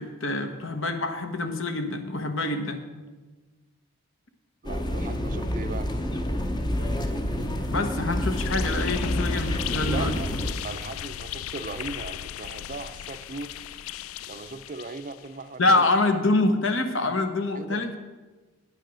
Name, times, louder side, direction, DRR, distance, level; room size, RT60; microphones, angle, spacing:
voice 1, 0.0-2.8 7.7-10.1 15.6-18.0, left 2 dB, 65° left, 7 dB, 1.2 m, -25 dB
sound 1, 4.6-10.5, equal, 20° left, 0.7 m, -28 dB
voice 2, 4.6-5.9 9.9-13.5 13.8-15.8 17.5-17.8, right 3 dB, 40° right, 10 dB, 0.5 m, -38 dB
sound 2, 8.4-15.4, left 11 dB, 80° left, 0.3 m, -37 dB
9.6 x 9.2 x 6.3 m, 1.3 s
head